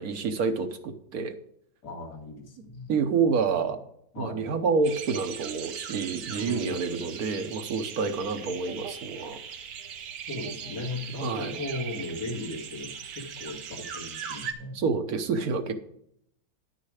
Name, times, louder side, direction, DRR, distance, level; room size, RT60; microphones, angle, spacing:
voice 1, 0.0-1.4 2.9-3.8 4.2-9.4 11.2-11.6 14.7-15.7, right 5 dB, 65° right, 8 dB, 1.3 m, -28 dB
voice 2, 1.8-2.9 3.5-3.7 4.1-4.5 6.4-7.1 8.0-8.5 10.3-14.8 15.6-15.7, left 2 dB, 75° left, 0 dB, 2.6 m, -37 dB
sound 1, 4.8-14.5, right 7 dB, 90° right, 1.6 m, -39 dB
10.5 x 6.5 x 4.9 m, 0.72 s
omnidirectional pair, 1.8 m